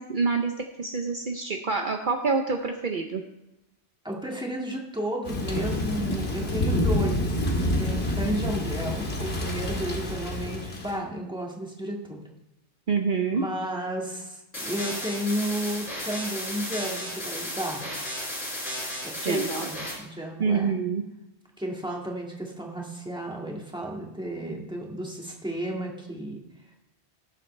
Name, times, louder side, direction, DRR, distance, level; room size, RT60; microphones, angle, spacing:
voice 1, 0.0-3.2 12.9-13.4 19.2-19.7 20.4-21.0, right 5 dB, 55° right, 4 dB, 0.9 m, -27 dB
voice 2, 4.0-12.2 13.3-17.9 19.0-20.8 21.6-26.4, right 1 dB, 5° right, -1 dB, 1.9 m, -33 dB
Thunder / Rain, 5.2-11.0, left 1 dB, 75° left, 2.0 m, -28 dB
sound 1, 14.5-19.9, left 1 dB, 50° left, 4.7 m, -34 dB
18.5 x 7.4 x 3.3 m, 0.93 s
omnidirectional pair, 1.1 m